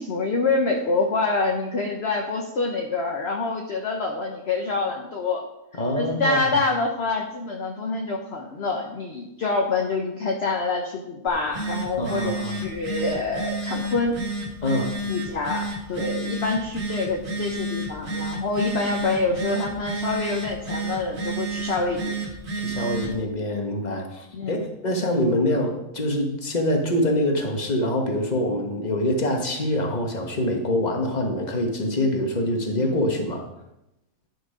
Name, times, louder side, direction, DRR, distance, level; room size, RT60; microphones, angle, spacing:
voice 1, 0.0-5.4 5.9-14.2 15.1-22.2 24.3-24.6, left 3 dB, 50° left, 1 dB, 1.2 m, -26 dB
voice 2, 5.7-6.6 12.0-12.6 14.6-14.9 22.6-33.4, left 1 dB, 30° left, 2 dB, 1.5 m, -25 dB
Telephone, 11.3-23.2, right 2 dB, 70° right, 2.2 m, -31 dB
11.0 x 6.3 x 5.1 m, 0.89 s
omnidirectional pair, 1.5 m